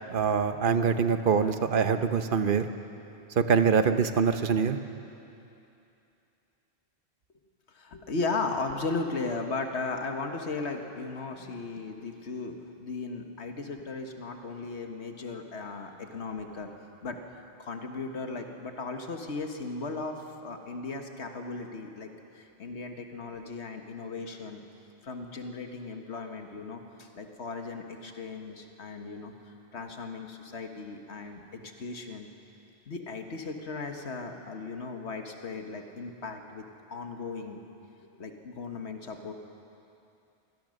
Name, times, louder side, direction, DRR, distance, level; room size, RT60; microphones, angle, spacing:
voice 1, 0.1-2.7 3.4-4.8, right 6 dB, 55° right, 9 dB, 1.0 m, -24 dB
voice 2, 7.7-16.7 17.0-17.2 17.6-24.6 25.0-32.3 32.9-36.6 36.9-37.6 38.2-39.3, left 3 dB, 85° left, 4 dB, 1.7 m, -36 dB
24.5 x 16.5 x 6.5 m, 2.8 s
omnidirectional pair, 1.1 m